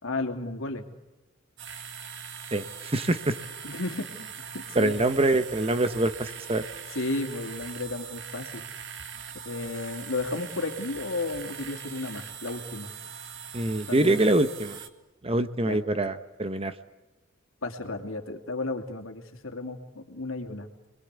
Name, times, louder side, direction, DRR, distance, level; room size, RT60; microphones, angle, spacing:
voice 1, 0.0-0.9 3.6-4.9 6.9-8.7 9.4-12.9 13.9-14.3 15.6-15.8 17.6-20.7, left 2 dB, 75° left, 4 dB, 2.8 m, -33 dB
sound 1, 1.6-14.9, right 7 dB, 60° right, 1.8 m, -41 dB
voice 2, 2.5-3.3 4.7-6.6 13.5-14.8 15.2-16.7, right 2 dB, 30° right, 10 dB, 1.1 m, -25 dB
29.0 x 21.5 x 8.3 m, 1.1 s
head